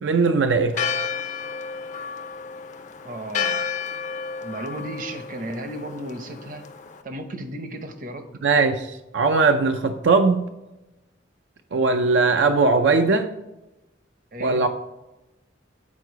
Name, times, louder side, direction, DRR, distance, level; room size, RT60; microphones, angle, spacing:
voice 1, 0.0-0.9 8.4-10.4 11.7-13.3 14.4-14.7, right 4 dB, 80° right, 0.5 m, -20 dB
Church bell, 0.7-7.0, left 6 dB, 40° left, 0.5 m, -31 dB
voice 2, 3.0-3.6 4.4-6.6 7.0-8.3 14.3-14.7, right 1 dB, 45° right, 0.8 m, -34 dB
8.4 x 4.6 x 4.7 m
head